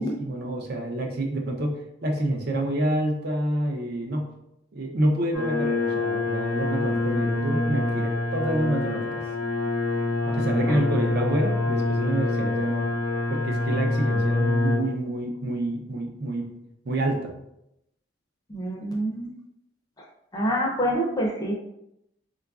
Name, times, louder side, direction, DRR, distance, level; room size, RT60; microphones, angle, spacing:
voice 1, 0.0-4.3 4.7-9.2 10.2-12.8 13.3-16.5 16.8-17.3, right 1 dB, 55° right, 1 dB, 0.5 m, -28 dB
sound 1, 5.3-14.8, left 2 dB, 70° right, 1.2 m, -26 dB
voice 2, 18.5-19.3 20.0-20.1 20.3-21.6, equal, 20° left, -1 dB, 0.5 m, -27 dB
3.9 x 2.4 x 2.3 m, 0.81 s
head